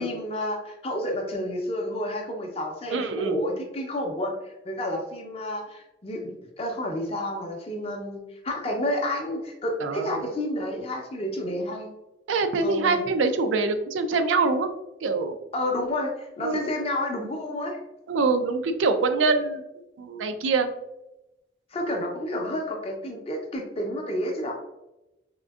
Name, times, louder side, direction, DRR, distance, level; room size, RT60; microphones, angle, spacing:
voice 1, 0.0-6.2 6.6-11.9 12.6-13.0 15.5-17.8 21.7-24.5, left 1 dB, 30° left, 1 dB, 0.5 m, -30 dB
voice 2, 2.9-3.4 9.8-10.2 12.3-14.7 15.0-15.4 16.4-16.7 18.1-19.6 20.0-20.7, right 3 dB, 85° right, 8 dB, 0.4 m, -24 dB
3.6 x 2.5 x 2.3 m, 0.93 s
head